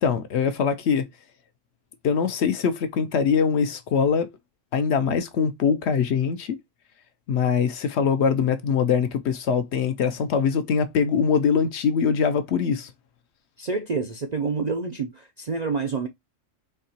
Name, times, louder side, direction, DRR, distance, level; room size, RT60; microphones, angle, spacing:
voice 1, 0.0-1.1 2.0-4.3 4.7-6.6 7.3-12.9, left 6 dB, 65° left, 0.8 m, -23 dB
voice 2, 13.6-16.1, right 4 dB, 55° right, 0.4 m, -28 dB
4.4 x 2.8 x 2.7 m
omnidirectional pair, 1.4 m